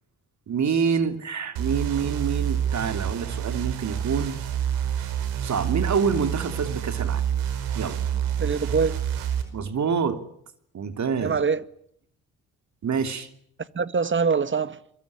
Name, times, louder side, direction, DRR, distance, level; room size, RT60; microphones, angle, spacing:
voice 1, 0.5-4.4 5.4-7.2 7.7-8.0 9.5-10.2 10.7-11.4 12.8-13.3, right 6 dB, 55° right, 3.1 m, -26 dB
sound 1, 1.6-9.4, right 9 dB, 80° right, 5.0 m, -28 dB
voice 2, 8.4-9.0 11.2-11.6 13.6-14.8, right 5 dB, 35° right, 1.8 m, -24 dB
24.0 x 23.0 x 9.9 m
supercardioid pair, 60°, 34 cm